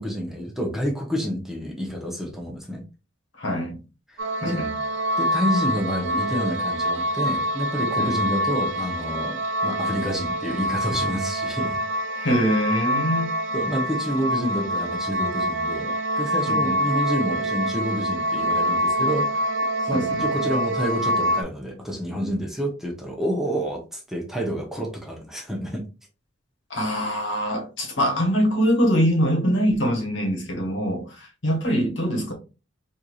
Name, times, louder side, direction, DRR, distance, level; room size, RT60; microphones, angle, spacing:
voice 1, 0.0-2.8 4.1-4.6 5.2-11.8 13.5-19.5 19.9-25.8, equal, ahead, 0.7 m, -28 dB
voice 2, 3.4-3.8 4.4-4.7 8.0-8.1 12.2-13.3 16.5-16.8 19.9-20.3 26.7-32.3, equal, 70° left, 1.2 m, -23 dB
sound 1, 4.2-21.4, equal, 80° right, 0.5 m, -25 dB
4.5 x 2.6 x 2.3 m
head